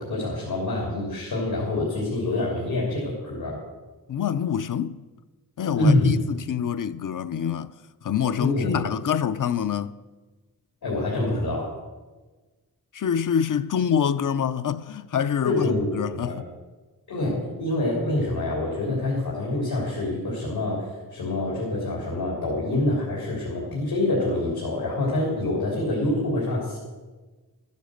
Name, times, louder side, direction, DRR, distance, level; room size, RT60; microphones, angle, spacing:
voice 1, 0.0-3.6 5.8-6.2 8.4-8.9 10.8-11.7 15.4-16.4 17.1-26.8, left 2 dB, 90° left, 3.5 m, -26 dB
voice 2, 4.1-5.0 5.6-7.7 8.0-9.9 12.9-16.4, left 8 dB, 55° left, 0.6 m, -26 dB
12.5 x 10.5 x 6.6 m
wide cardioid pair, 100°, 37 cm